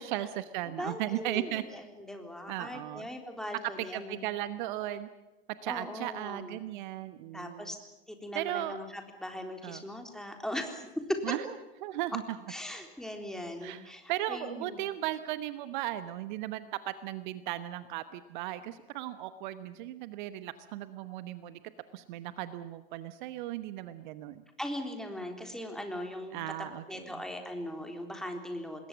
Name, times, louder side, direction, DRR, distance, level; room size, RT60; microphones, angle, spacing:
voice 1, 0.0-1.6 2.5-3.1 3.8-5.1 5.6-7.7 8.3-8.8 9.6-9.8 11.2-11.4 11.8-12.2 13.6-13.8 14.1-21.6 21.9-24.4 26.3-27.1, right 14 dB, 50° right, 13 dB, 1.1 m, -36 dB
voice 2, 0.8-4.2 5.7-6.6 7.3-7.8 8.1-11.4 12.5-14.8 24.6-26.5 26.9-28.9, left 1 dB, ahead, 4 dB, 3.7 m, -39 dB
27.0 x 20.5 x 7.4 m, 1.1 s
figure-of-eight pair, 90°, 30 cm